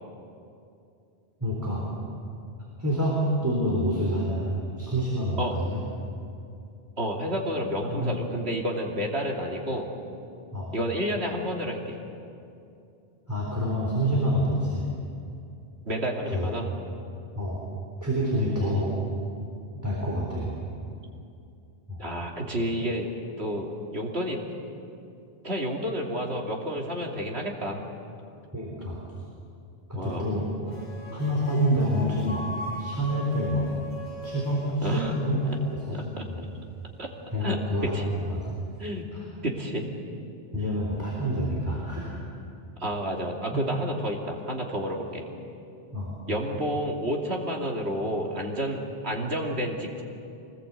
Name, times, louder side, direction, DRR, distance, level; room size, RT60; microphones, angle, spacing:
voice 1, 1.4-1.8 2.8-5.8 7.8-8.3 10.5-10.7 13.3-14.9 16.3-16.5 17.4-17.6 18.0-18.9 19.7-20.5 21.9-22.0 28.5-29.0 29.9-30.5 31.1-32.4 32.8-33.7 34.2-35.4 35.7-36.5 37.3-38.0 38.2-38.5 40.5-42.2 45.9-46.1, equal, 15° right, -4 dB, 3.9 m, -27 dB
voice 2, 7.0-9.9 10.7-12.0 15.9-16.7 18.6-18.9 22.0-23.1 23.4-24.4 25.4-27.8 29.9-30.3 34.8-35.1 35.4-35.6 35.9-36.2 37.0-37.1 37.4-38.1 38.8-39.1 39.4-39.9 42.8-45.2 46.3-50.0, equal, 85° right, 0 dB, 3.0 m, -30 dB
sound 1, 30.7-36.0, left 1 dB, 40° left, 3.1 m, -40 dB
25.0 x 20.0 x 8.1 m, 2.6 s
omnidirectional pair, 1.1 m